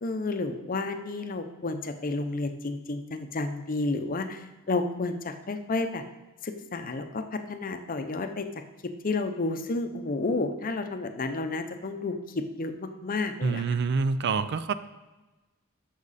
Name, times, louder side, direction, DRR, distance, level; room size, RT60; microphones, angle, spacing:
voice 1, 0.0-6.0 6.4-8.5 9.0-12.2 12.5-13.6, left 3 dB, 40° left, 7 dB, 0.7 m, -31 dB
voice 2, 13.4-14.7, right 4 dB, 55° right, 13 dB, 0.4 m, -26 dB
9.8 x 6.6 x 4.1 m, 1.1 s
head